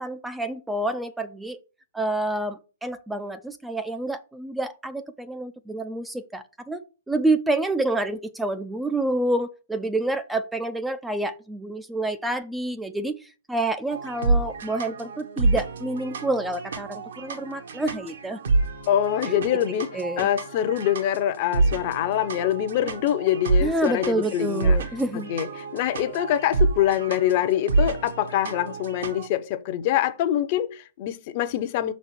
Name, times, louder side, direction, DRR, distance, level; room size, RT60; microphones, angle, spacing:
voice 1, 0.0-1.6 1.9-6.8 7.1-13.1 13.5-18.4 19.3-19.4 19.9-20.3 23.6-25.3, right 2 dB, 5° right, 0.5 m, -28 dB
sound 1, 13.9-29.3, right 3 dB, 70° right, 1.5 m, -28 dB
voice 2, 18.9-19.9 20.2-24.8 25.3-31.9, left 11 dB, 45° left, 0.7 m, -24 dB
5.9 x 4.1 x 5.9 m
hypercardioid pair, 125°, 0 cm